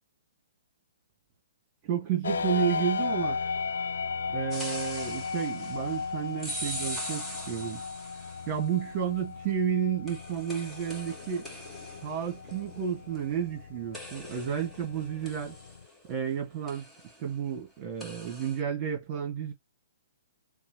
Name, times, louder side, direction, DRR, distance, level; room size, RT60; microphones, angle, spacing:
voice 1, 1.8-3.4 4.3-7.8 8.5-11.5 12.0-15.6 16.1-16.8 17.2-19.5, right 8 dB, 30° right, 1.9 m, -31 dB
sound 1, 2.2-15.9, left 5 dB, 65° left, 0.5 m, -36 dB
sound 2, 4.5-8.7 10.1-13.6 13.9-16.3 16.7-17.2 18.0-18.6, equal, 5° left, 1.3 m, -42 dB
5.3 x 2.3 x 3.0 m
figure-of-eight pair, 125°, 0 cm